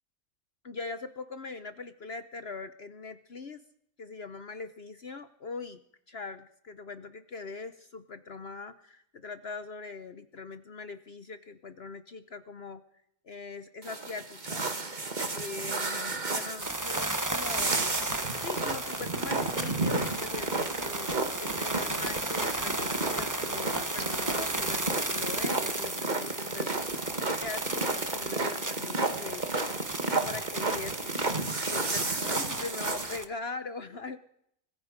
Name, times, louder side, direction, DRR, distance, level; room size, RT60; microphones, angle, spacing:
voice 1, 0.6-3.6 4.0-5.8 6.1-12.8 13.2-14.7 15.3-18.0 18.4-29.7 30.1-34.2, left 4 dB, 50° left, 10 dB, 1.1 m, -41 dB
sound 1, 13.8-33.2, right 3 dB, 30° right, 1.6 m, -33 dB
sound 2, 16.6-33.2, right 2 dB, 15° right, 1.0 m, -34 dB
25.5 x 20.5 x 5.1 m, 0.73 s
omnidirectional pair, 1.5 m